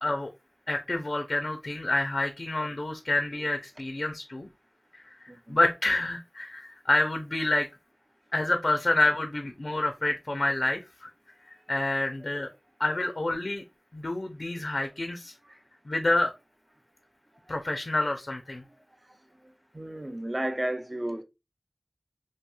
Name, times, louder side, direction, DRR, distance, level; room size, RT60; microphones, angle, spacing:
voice 1, 0.7-4.5 4.9-7.7 8.3-11.1 11.7-12.5 12.8-13.6 13.9-15.3 15.9-16.3 17.5-18.6, left 2 dB, 60° left, 0.4 m, -28 dB
voice 2, 19.7-21.2, right 1 dB, 30° right, 0.4 m, -32 dB
2.9 x 2.7 x 2.2 m
wide cardioid pair, 40°, 0 cm